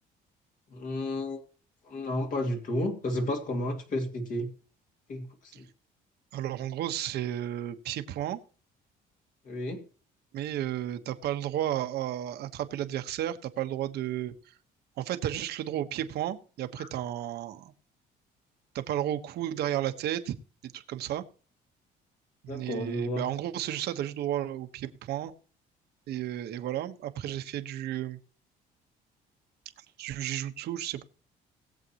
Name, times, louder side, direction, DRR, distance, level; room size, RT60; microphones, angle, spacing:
voice 1, 0.7-1.4 1.8-4.5 5.1-5.6 9.4-9.8 16.8-16.9 22.5-23.3, left 1 dB, 50° left, 2.6 m, -32 dB
voice 2, 6.3-8.4 10.3-14.5 15.0-17.7 18.7-20.3 20.6-21.2 22.4-25.3 26.1-28.2 30.0-31.0, right 12 dB, 75° right, 1.3 m, -33 dB
20.0 x 7.6 x 3.0 m
cardioid pair, 110°, 17 cm